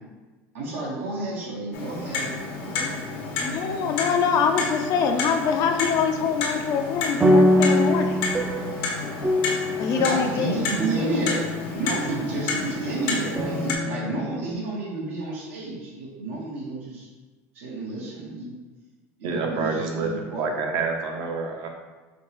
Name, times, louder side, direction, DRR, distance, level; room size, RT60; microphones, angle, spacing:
voice 1, 0.5-2.3 2.6-3.0 9.9-11.4 11.7-17.1 17.5-18.5 19.2-20.4, right 2 dB, 90° right, -4 dB, 1.4 m, -31 dB
Clock, 1.7-13.7, left 4 dB, 70° left, 1.0 m, -31 dB
voice 2, 3.4-8.2 9.8-10.6, left 6 dB, 55° left, 5 dB, 0.5 m, -24 dB
sound 1, 6.7-12.7 13.4-14.5, equal, 15° right, 0.4 m, -24 dB
voice 3, 19.2-21.7, right 4 dB, 60° right, 2 dB, 0.8 m, -27 dB
5.1 x 2.9 x 3.1 m, 1.3 s
supercardioid pair, 115°, 7 cm